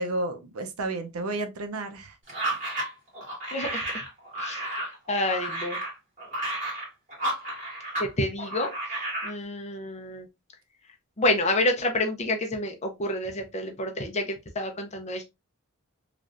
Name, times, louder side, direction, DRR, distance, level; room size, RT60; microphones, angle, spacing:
voice 1, 0.0-2.1, right 2 dB, 80° right, 0.6 m, -31 dB
sound 1, 2.3-8.1 8.4-9.3, right 1 dB, 35° right, 1.9 m, -32 dB
voice 2, 3.5-4.0 4.4-5.8 8.0-8.7 9.2-10.3 11.2-15.2, left 1 dB, 30° left, 0.6 m, -28 dB
3.2 x 2.5 x 2.4 m
head